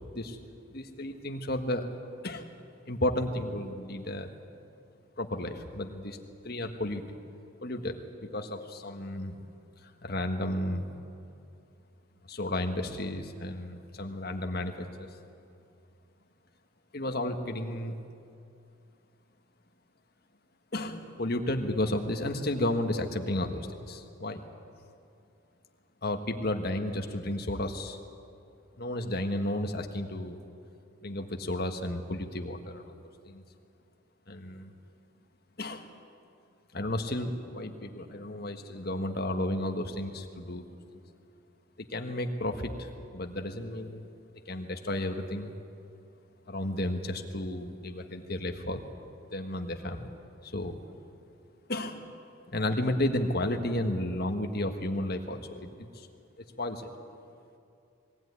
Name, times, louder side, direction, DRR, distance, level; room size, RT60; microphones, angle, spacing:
voice 1, 0.7-1.9 2.2-2.4 2.8-4.3 5.2-6.2 6.4-7.0 7.6-9.3 10.0-10.9 12.3-15.1 16.9-18.0 20.7-24.4 26.0-28.0 28.8-30.4 31.0-32.9 33.2-33.4 34.3-34.7 35.6-35.9 36.7-40.6 41.8-44.1 44.5-45.5 46.5-48.8 49.3-50.1 50.4-50.8 51.7-52.0 52.5-56.1 56.4-56.9, left 1 dB, 50° left, 4 dB, 1.6 m, -33 dB
21.5 x 16.5 x 9.7 m, 2.5 s
head